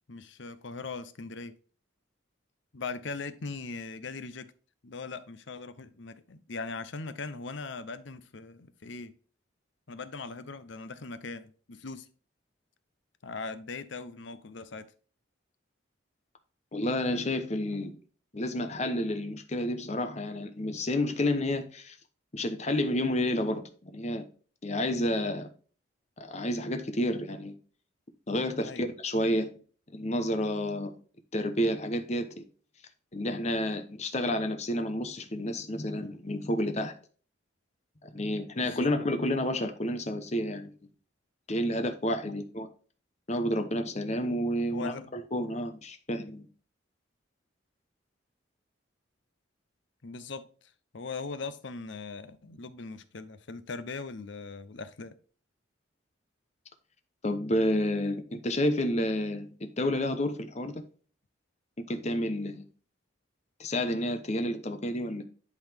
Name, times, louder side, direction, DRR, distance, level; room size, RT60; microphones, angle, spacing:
voice 1, 0.1-1.5 2.7-4.5 4.8-9.1 9.9-12.1 13.2-14.9 28.6-28.8 38.6-38.9 42.2-42.4 44.7-45.1 50.0-50.4 50.9-55.1, left 4 dB, 65° left, 0.7 m, -40 dB
voice 2, 16.7-17.9 18.3-22.0 22.3-24.2 24.6-25.5 26.2-27.6 28.3-29.5 29.9-31.0 31.3-32.4 33.1-36.9 38.0-40.7 41.5-42.7 43.3-46.5 57.2-60.8 61.9-62.6 63.6-65.2, left 1 dB, 35° left, 0.9 m, -30 dB
10.5 x 4.0 x 3.5 m
head